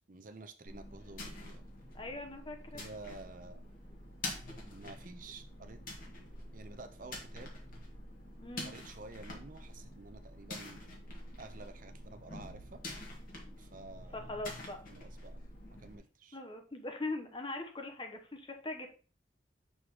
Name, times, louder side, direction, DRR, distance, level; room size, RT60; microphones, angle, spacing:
voice 1, 0.0-1.6 2.7-3.6 4.6-6.1 6.5-7.5 8.6-10.8 11.4-12.8 13.6-14.3 14.9-15.4 15.7-16.4, right 3 dB, 50° right, 9 dB, 0.6 m, -51 dB
sound 1, 0.7-16.0, left 1 dB, 50° left, 1.9 m, -47 dB
voice 2, 1.9-2.8 8.4-8.7 14.1-14.8 16.3-18.9, left 2 dB, 25° left, 5 dB, 1.0 m, -41 dB
6.3 x 3.8 x 4.8 m, 0.38 s
head